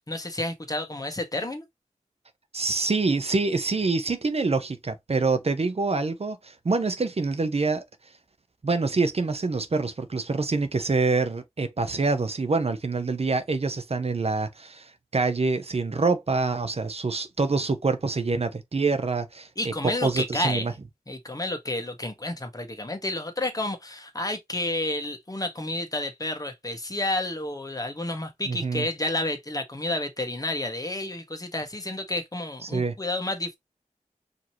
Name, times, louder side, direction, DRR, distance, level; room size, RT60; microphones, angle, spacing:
voice 1, 0.0-1.6 19.6-20.7 21.1-33.6, left 1 dB, 25° left, 1.3 m, -30 dB
voice 2, 2.5-7.8 8.6-19.7 20.0-20.7 28.5-28.9 32.6-33.0, right 3 dB, 50° right, 0.8 m, -26 dB
5.0 x 3.0 x 2.9 m
wide cardioid pair, 70°, 13 cm